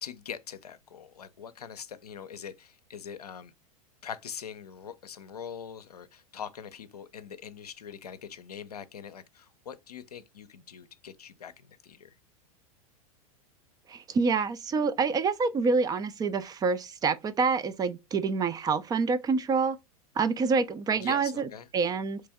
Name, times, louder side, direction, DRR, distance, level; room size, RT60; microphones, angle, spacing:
voice 1, 0.0-3.5 4.0-12.1 21.0-21.7, left 8 dB, 85° left, 0.5 m, -43 dB
voice 2, 13.9-19.8 20.2-22.2, right 4 dB, 20° right, 0.4 m, -27 dB
3.4 x 3.1 x 3.5 m
hypercardioid pair, 95°, 19 cm